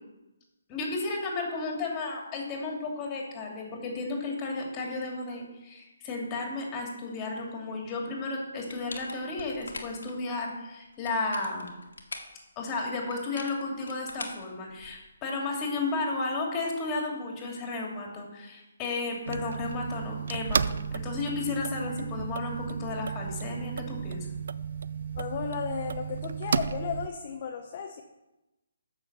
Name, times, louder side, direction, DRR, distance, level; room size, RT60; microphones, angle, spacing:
voice 1, 0.7-11.7 12.6-24.3, left 3 dB, 20° left, 0 dB, 2.5 m, -33 dB
sound 1, 8.7-10.1 10.9-12.4 13.1-15.1, left 3 dB, 85° left, 1.7 m, -42 dB
sound 2, 19.3-27.1, right 6 dB, 60° right, 0.4 m, -33 dB
voice 2, 25.2-28.0, left 7 dB, 40° left, 2 dB, 0.9 m, -34 dB
8.9 x 6.4 x 6.7 m, 1.0 s
hypercardioid pair, 150°, 0 cm